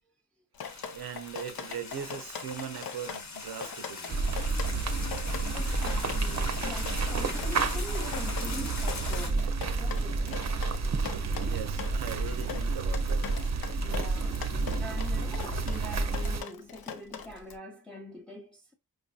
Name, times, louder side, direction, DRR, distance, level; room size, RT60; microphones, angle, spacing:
Drip, 0.5-17.6, left 6 dB, 80° left, 0.6 m, -41 dB
sound 1, 0.6-9.3, left 4 dB, 50° left, 0.9 m, -41 dB
voice 1, 0.9-4.2 11.4-13.3, right 8 dB, 90° right, 0.7 m, -40 dB
sound 2, 4.1-16.4, right 3 dB, 50° right, 0.6 m, -30 dB
voice 2, 5.5-10.5 13.8-18.7, left 2 dB, ahead, 0.6 m, -44 dB
4.9 x 2.6 x 2.2 m
cardioid pair, 55°, 36 cm